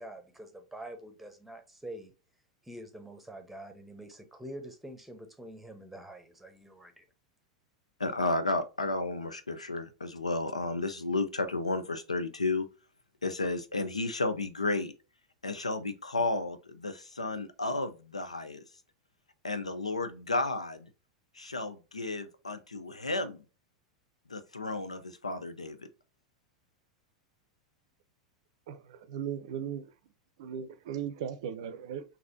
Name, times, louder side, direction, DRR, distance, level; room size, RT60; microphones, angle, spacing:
voice 1, 0.0-2.1 2.6-7.0, right 1 dB, 5° right, 0.9 m, -46 dB
voice 2, 8.0-12.6 13.2-14.9 15.4-18.6 19.4-20.9 21.4-23.4 24.3-25.9, left 2 dB, 85° left, 0.5 m, -32 dB
voice 3, 28.7-29.9 30.4-32.0, right 8 dB, 60° right, 0.5 m, -37 dB
3.9 x 2.7 x 2.6 m
figure-of-eight pair, 90°, 3 cm